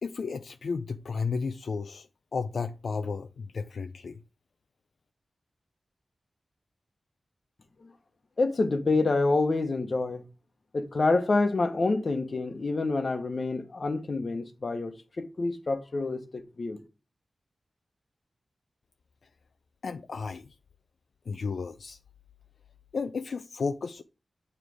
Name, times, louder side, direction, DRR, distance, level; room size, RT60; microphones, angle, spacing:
voice 1, 0.0-4.2 19.8-20.5 21.3-22.0 22.9-24.0, left 5 dB, 75° left, 0.3 m, -33 dB
voice 2, 8.4-10.2 10.7-16.8, left 3 dB, 45° left, 0.9 m, -27 dB
9.2 x 3.2 x 4.7 m
wide cardioid pair, 135°, 0 cm